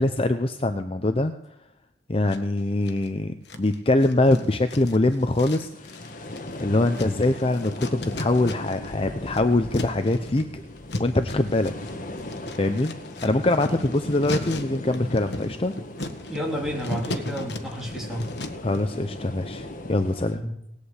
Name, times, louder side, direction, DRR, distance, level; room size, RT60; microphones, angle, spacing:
voice 1, 0.0-1.3 2.1-5.9 6.6-10.5 11.0-11.7 12.5-12.9 13.2-15.7 18.6-20.4, left 2 dB, 30° left, 8 dB, 0.7 m, -23 dB
sound 1, 2.3-3.1 3.5-8.9 9.2-18.8, left 2 dB, 65° left, 1.5 m, -37 dB
sound 2, 5.2-20.4, left 1 dB, 45° left, 1.5 m, -38 dB
voice 2, 16.3-18.3 20.3-20.5, equal, ahead, -2 dB, 3.6 m, -31 dB
18.5 x 8.4 x 8.2 m, 0.80 s
head